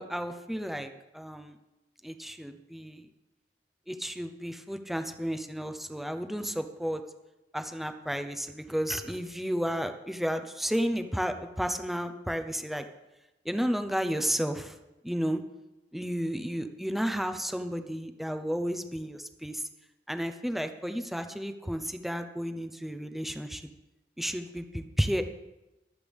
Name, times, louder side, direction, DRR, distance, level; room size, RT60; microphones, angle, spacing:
voice 1, 0.0-1.6 2.0-3.1 3.9-7.0 7.5-12.9 13.4-14.8 15.0-15.4 15.9-19.6 20.1-23.6 24.2-25.2, equal, ahead, 7 dB, 0.8 m, -32 dB
24.0 x 8.2 x 3.6 m, 1.0 s
head